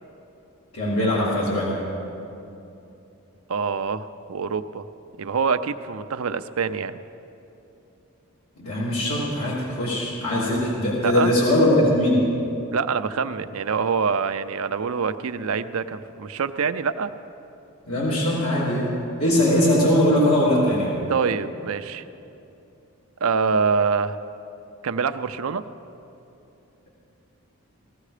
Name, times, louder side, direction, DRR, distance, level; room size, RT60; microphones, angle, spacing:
voice 1, 0.7-1.8 8.6-12.3 17.8-21.0, left 1 dB, 80° left, -8 dB, 2.9 m, -21 dB
voice 2, 3.5-4.9 5.2-7.0 11.0-11.3 12.7-17.1 21.1-22.0 23.2-24.2 24.8-25.6, right 5 dB, 75° right, 10 dB, 0.5 m, -25 dB
18.0 x 14.0 x 5.0 m, 2.8 s
head